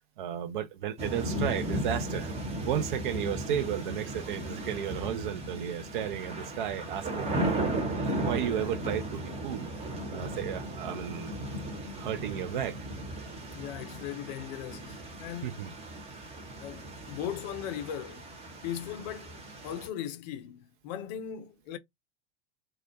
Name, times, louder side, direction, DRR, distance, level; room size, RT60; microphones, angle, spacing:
voice 1, 0.2-2.3 2.6-7.9 8.2-9.7 10.1-11.3 12.0-12.8 15.4-15.7, right 9 dB, 50° right, 0.5 m, -33 dB
sound 1, 1.0-19.9, right 1 dB, 20° right, 0.8 m, -36 dB
voice 2, 13.5-15.7 16.6-18.2 18.6-19.4 19.6-21.8, left 10 dB, 45° left, 0.5 m, -38 dB
2.2 x 2.1 x 2.9 m
figure-of-eight pair, 85°, 32 cm